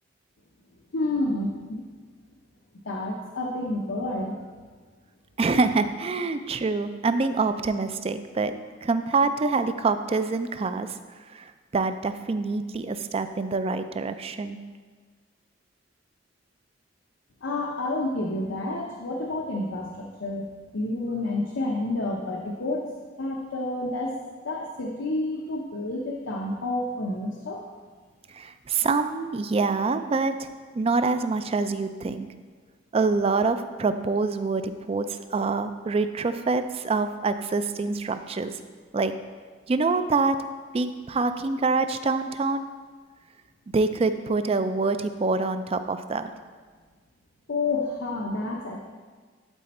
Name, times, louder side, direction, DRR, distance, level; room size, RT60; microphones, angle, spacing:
voice 1, 0.9-1.8 2.8-4.3 17.4-22.9 23.2-24.2 24.4-27.6 47.5-48.8, left 2 dB, 90° left, -1 dB, 0.8 m, -29 dB
voice 2, 5.4-8.6 8.8-11.0 11.3-14.6 28.3-30.5 30.7-32.3 32.9-38.6 38.9-39.1 39.7-40.4 40.7-42.6 43.7-46.3, right 3 dB, 30° right, 10 dB, 0.4 m, -26 dB
11.5 x 4.3 x 4.2 m, 1.5 s
head